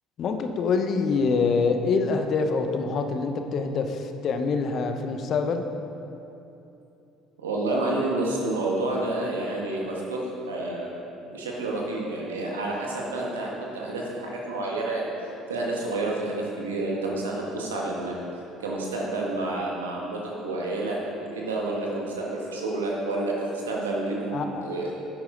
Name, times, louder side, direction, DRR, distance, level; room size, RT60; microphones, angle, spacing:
voice 1, 0.2-5.7 24.3-24.9, left 4 dB, 50° left, 6 dB, 0.8 m, -25 dB
voice 2, 7.4-10.2 10.5-10.9 11.3-15.1 15.5-18.1 18.6-21.0 21.3-24.9, right 2 dB, 85° right, -3 dB, 1.6 m, -29 dB
10.5 x 8.9 x 3.9 m, 2.9 s
hypercardioid pair, 60°, 0 cm